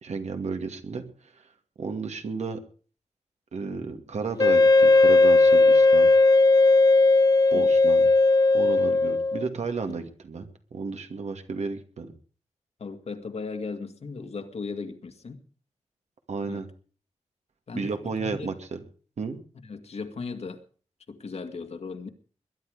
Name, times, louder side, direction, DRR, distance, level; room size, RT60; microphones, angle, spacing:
voice 1, 0.0-1.1 1.8-2.6 3.5-6.1 7.5-8.1 8.5-12.1 16.3-16.7 17.7-18.8 19.2-19.4, right 4 dB, 75° right, 6 dB, 2.4 m, -33 dB
Wind instrument woodwind instrument, 4.4-9.5, left 3 dB, 35° left, 0.7 m, -17 dB
voice 2, 12.8-15.4 16.4-16.6 17.7-17.9 18.2-18.5 19.6-20.6 21.1-22.1, left 4 dB, 65° left, 7 dB, 2.1 m, -37 dB
21.5 x 10.5 x 5.1 m, 0.41 s
wide cardioid pair, 90°, 12 cm